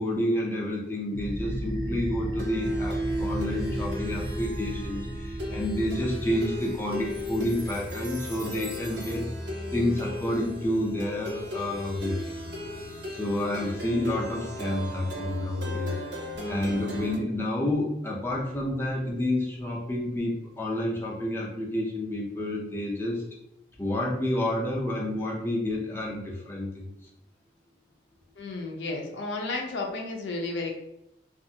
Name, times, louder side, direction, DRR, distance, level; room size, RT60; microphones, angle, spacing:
voice 1, 0.0-9.3 9.7-12.3 13.1-16.0 16.5-23.2 23.8-26.9, left 1 dB, 15° left, -4 dB, 0.5 m, -29 dB
Plucked string instrument, 1.1-17.2, equal, 75° right, 0.7 m, -34 dB
voice 2, 28.4-30.7, left 3 dB, 85° left, 1 dB, 0.6 m, -32 dB
2.6 x 2.4 x 2.7 m, 0.84 s
head